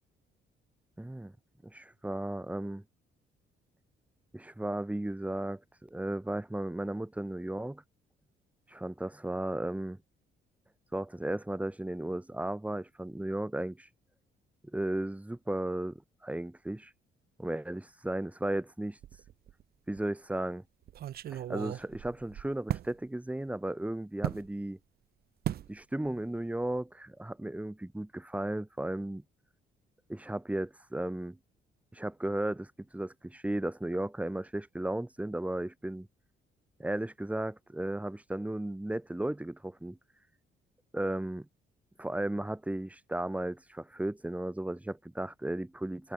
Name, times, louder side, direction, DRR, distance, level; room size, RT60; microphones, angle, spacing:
voice 1, 1.0-1.3 1.6-2.8 4.3-7.8 8.7-10.0 10.9-13.9 14.7-16.9 17.4-19.0 19.9-20.6 21.3-24.8 25.7-29.2 30.1-31.4 31.9-36.1 36.8-40.0 40.9-41.5 42.0-46.1, right 1 dB, 5° right, 1.3 m, -35 dB
sound 1, 19.0-19.6 20.0-20.1 20.9-22.9 24.2-24.5 25.4-25.7 26.0-26.4 26.6-26.8, right 11 dB, 50° right, 0.5 m, -36 dB
cardioid pair, 90°, 20 cm